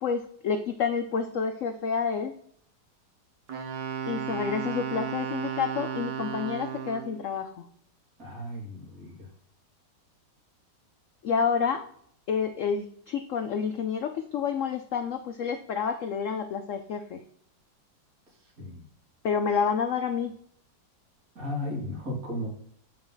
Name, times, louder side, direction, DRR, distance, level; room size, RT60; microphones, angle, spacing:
voice 1, 0.0-2.3 4.1-7.7 11.2-11.8 12.3-17.2 19.2-20.3, left 6 dB, 90° left, 7 dB, 0.6 m, -29 dB
Wind instrument woodwind instrument, 3.5-7.2, right 8 dB, 70° right, 1.7 m, -34 dB
voice 2, 8.2-9.3 18.6-18.8 21.3-22.5, left 1 dB, 50° right, -2 dB, 2.8 m, -35 dB
7.5 x 4.8 x 3.9 m, 0.65 s
omnidirectional pair, 2.0 m